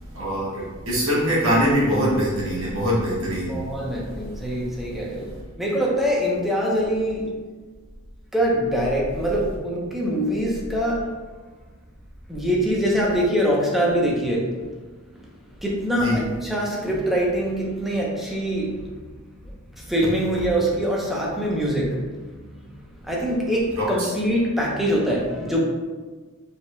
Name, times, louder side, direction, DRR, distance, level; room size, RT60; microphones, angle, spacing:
voice 1, 0.1-3.7 4.2-4.9 5.2-5.3 16.0-16.3 23.8-24.1, equal, 75° right, -6 dB, 1.4 m, -24 dB
voice 2, 3.5-7.3 8.3-11.1 12.3-14.6 15.6-18.9 19.8-22.0 22.6-22.7 23.0-25.6, equal, ahead, -3 dB, 0.7 m, -24 dB
4.9 x 3.6 x 2.2 m, 1.3 s
head